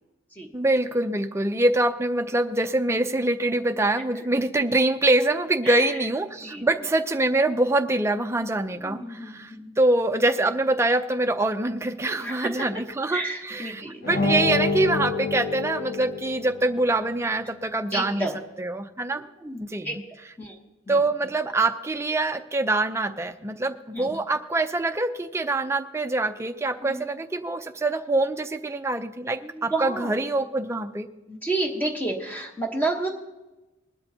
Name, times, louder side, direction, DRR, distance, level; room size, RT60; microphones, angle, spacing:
voice 1, 0.5-18.3 18.6-19.2 19.6-19.9 20.9-31.1, right 2 dB, 15° right, 7 dB, 0.5 m, -24 dB
voice 2, 5.6-6.1 6.4-6.6 8.8-9.8 12.1-12.8 13.1-14.0 17.9-18.4 19.1-20.0 20.4-20.5 20.9-21.0 23.9-24.1 26.8-27.0 29.4-30.1 31.3-33.1, right 2 dB, 10° left, 1 dB, 1.1 m, -31 dB
sound 1, 14.0-16.7, left 3 dB, 50° left, 1.0 m, -27 dB
20.5 x 12.5 x 2.8 m, 1.1 s
head